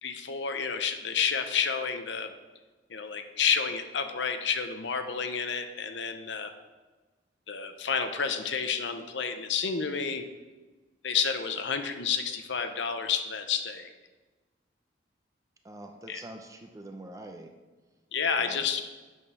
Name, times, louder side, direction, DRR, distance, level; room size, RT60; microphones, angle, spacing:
voice 1, 0.0-2.3 2.9-6.5 7.5-10.2 11.0-13.9 16.1-16.2 18.1-18.8, left 6 dB, 70° left, 7 dB, 0.7 m, -30 dB
voice 2, 15.6-17.5 18.4-18.8, right 1 dB, 15° right, 4 dB, 0.7 m, -45 dB
8.4 x 5.3 x 5.5 m, 1.2 s
head